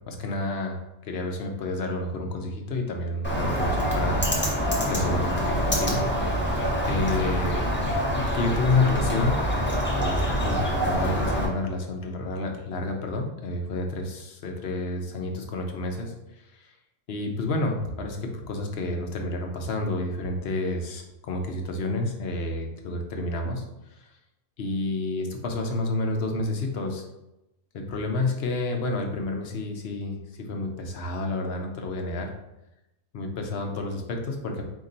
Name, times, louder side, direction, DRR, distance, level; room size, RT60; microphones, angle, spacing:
voice 1, 0.1-4.3 4.9-6.1 6.8-7.6 8.1-9.4 9.9-16.7 17.1-23.6 24.0-24.1 24.6-27.0 27.7-32.3 33.1-34.6, left 2 dB, 65° left, 3 dB, 0.9 m, -29 dB
Bird, 3.2-11.5, equal, 10° left, 0.7 m, -25 dB
4.2 x 2.9 x 3.8 m, 0.92 s
omnidirectional pair, 1.2 m